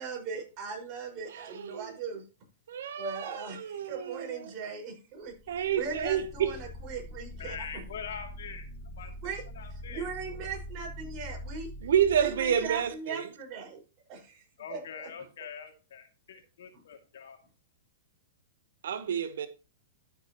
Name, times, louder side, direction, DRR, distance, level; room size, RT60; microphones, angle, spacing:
voice 1, 0.0-2.2 3.0-5.3 5.8-7.6 9.2-9.4 9.9-11.7 12.2-13.8 14.1-14.4 14.7-14.8, right 5 dB, 35° right, 5.3 m, -38 dB
voice 2, 1.3-2.0 2.7-4.5 5.5-6.5 11.8-13.3 18.8-19.5, right 9 dB, 70° right, 1.0 m, -29 dB
sound 1, 5.3-12.9, equal, 15° left, 1.7 m, -44 dB
voice 3, 7.4-8.6 8.9-9.1 9.5-10.1 14.6-17.4, left 7 dB, 70° left, 2.5 m, -43 dB
12.5 x 6.9 x 3.0 m
hypercardioid pair, 120°, 0 cm